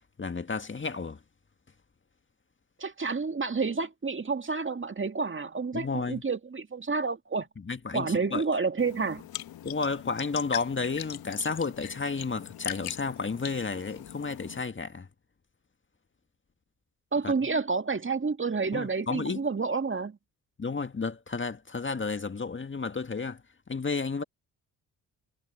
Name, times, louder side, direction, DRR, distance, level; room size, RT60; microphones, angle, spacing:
voice 1, 0.2-1.2 5.7-6.2 7.6-8.4 9.6-15.1 17.2-17.3 18.7-19.4 20.6-23.4 23.7-24.2, left 4 dB, 25° left, 1.9 m, -32 dB
voice 2, 2.8-7.5 7.9-9.3 17.1-20.2, right 4 dB, 25° right, 2.2 m, -29 dB
sound 1, 8.8-14.6, left 11 dB, 50° left, 1.3 m, -41 dB
hypercardioid pair, 45°, 46 cm